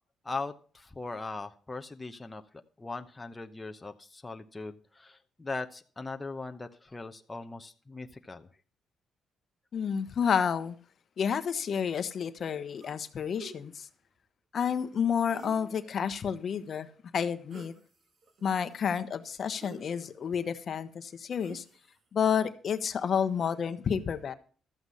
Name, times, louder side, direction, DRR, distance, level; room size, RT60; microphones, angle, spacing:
voice 1, 0.2-2.4 2.8-8.5, left 3 dB, 20° left, 0.9 m, -39 dB
voice 2, 9.7-10.8 11.2-13.9 14.5-16.9 17.1-17.7 18.4-21.6 22.1-24.3, left 7 dB, 55° left, 1.1 m, -30 dB
sound 1, 12.8-13.0 13.4-13.6 15.3-15.9 17.5-17.8 18.2-18.8 19.5-20.4 21.4-21.9, right 3 dB, 50° right, 2.5 m, -49 dB
13.5 x 8.0 x 5.5 m
cardioid pair, 90°, 0 cm